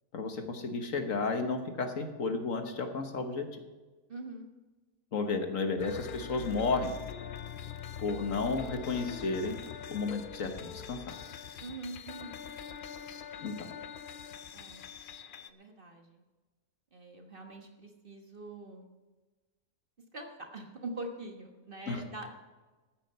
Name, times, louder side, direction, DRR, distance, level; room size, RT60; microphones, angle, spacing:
voice 1, 0.1-3.5 5.1-6.9 8.0-9.6 9.9-11.1 13.4-13.7 21.9-22.0, left 4 dB, 60° left, 5 dB, 1.5 m, -32 dB
voice 2, 4.1-4.5 11.6-12.4 14.5-14.8 15.5-16.2 16.9-18.9 20.1-22.3, right 2 dB, 35° right, 3 dB, 1.5 m, -44 dB
sound 1, 5.8-15.5, left 7 dB, 80° left, 0.4 m, -44 dB
14.0 x 9.3 x 5.6 m, 1.2 s
omnidirectional pair, 1.6 m